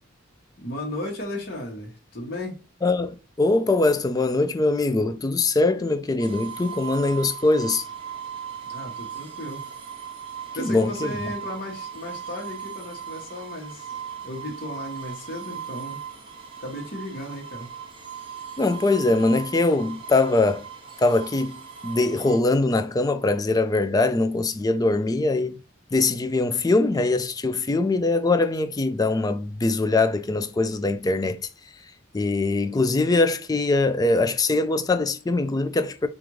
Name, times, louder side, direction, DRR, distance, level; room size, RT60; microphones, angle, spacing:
voice 1, 0.6-2.6 8.6-9.6 10.5-13.9 14.2-16.0 16.6-17.7, left 1 dB, 50° left, 1.1 m, -35 dB
voice 2, 2.8-7.8 10.6-11.1 18.6-20.6 21.0-21.6 21.8-25.6 25.9-31.4 32.1-36.1, left 2 dB, 20° left, 0.3 m, -22 dB
sound 1, 6.2-22.4, right 8 dB, 25° right, 0.7 m, -38 dB
4.9 x 2.5 x 3.0 m
head